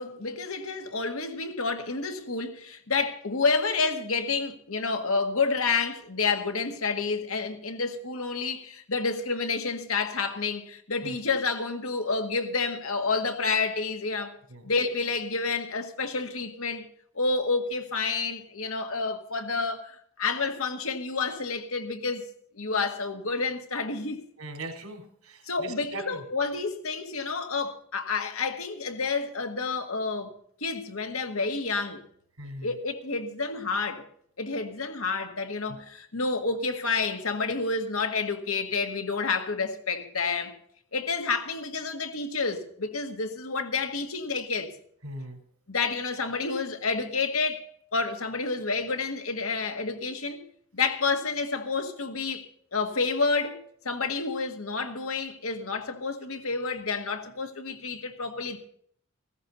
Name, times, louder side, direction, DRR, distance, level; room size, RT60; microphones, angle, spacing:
voice 1, 0.0-14.4 14.6-16.9 17.1-22.3 22.5-24.2 25.4-30.3 30.6-32.0 32.6-34.0 34.4-40.5 40.9-44.7 45.7-50.4 50.7-58.6, left 4 dB, 80° left, 1.8 m, -29 dB
voice 2, 24.4-26.2 32.4-32.7 35.7-35.8 45.0-45.4, right 1 dB, 90° right, 3.6 m, -40 dB
16.0 x 14.0 x 4.1 m
head